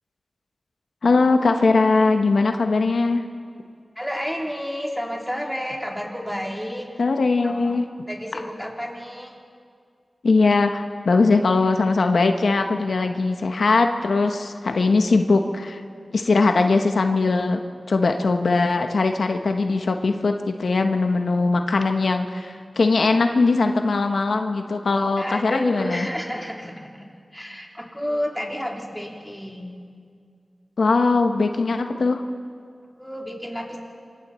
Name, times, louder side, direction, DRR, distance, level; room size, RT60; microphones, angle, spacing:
voice 1, 1.0-3.2 7.0-7.8 10.2-15.8 16.1-17.6 17.9-26.1 30.8-32.2, left 3 dB, 85° left, 5 dB, 1.1 m, -20 dB
voice 2, 3.9-6.9 7.4-7.8 8.1-9.4 25.2-29.8 33.0-33.8, equal, ahead, -1 dB, 3.4 m, -31 dB
26.5 x 23.5 x 4.4 m, 2.2 s
wide cardioid pair, 70°, 0 cm